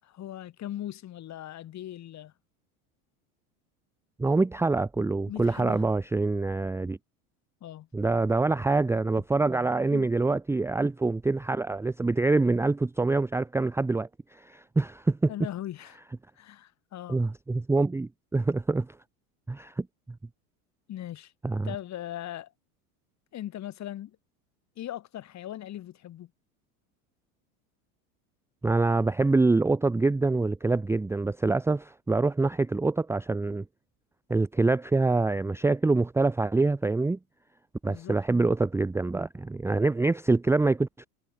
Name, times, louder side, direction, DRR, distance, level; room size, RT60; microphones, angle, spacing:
voice 1, 0.0-2.3 5.3-5.8 7.6-7.9 9.9-10.1 15.3-16.0 16.4-17.2 20.9-21.3 21.6-22.5 23.3-24.2 24.8-26.3 37.9-38.2, left 12 dB, 35° left, 7.6 m, -39 dB
voice 2, 4.2-7.0 7.9-15.3 17.1-19.0 19.5-19.9 21.4-21.7 28.6-33.6 34.3-37.2 37.8-41.1, right 3 dB, 5° right, 0.8 m, -25 dB
supercardioid pair, 120°, 44 cm